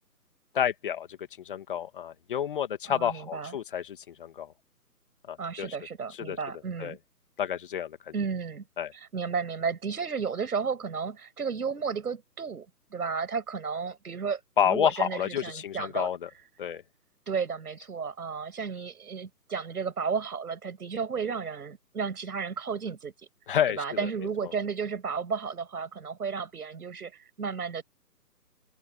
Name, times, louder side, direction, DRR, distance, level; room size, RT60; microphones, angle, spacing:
voice 1, 0.5-1.1 1.4-4.5 5.3-5.7 6.1-6.4 6.8-7.0 7.4-8.1 8.8-8.9 14.6-16.3 16.6-16.8 23.5-24.1 24.4-24.5, left 9 dB, 35° left, 2.3 m, -29 dB
voice 2, 2.9-3.6 5.4-7.0 8.1-8.6 8.9-16.1 17.3-23.1 23.7-27.8, right 5 dB, 65° right, 6.6 m, -33 dB
open air
hypercardioid pair, 165°, 48 cm